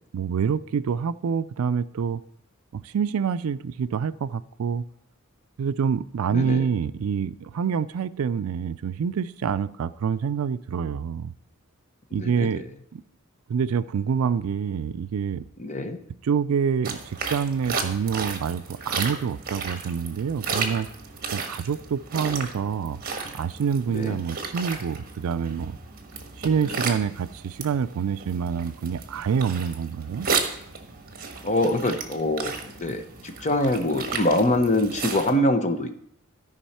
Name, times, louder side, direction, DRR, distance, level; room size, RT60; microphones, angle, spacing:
voice 1, 0.1-2.2 2.7-4.8 5.6-11.3 12.1-12.6 12.9-13.0 13.5-15.4 16.2-20.9 21.3-23.0 23.3-25.8 26.4-30.3, right 6 dB, 75° right, 0.4 m, -26 dB
voice 2, 6.3-6.7 12.1-12.7 15.6-16.0 23.9-24.2 31.4-35.9, left 1 dB, 35° left, 0.8 m, -24 dB
sound 1, 16.8-35.3, right 5 dB, 45° right, 1.3 m, -34 dB
13.5 x 5.4 x 4.3 m
head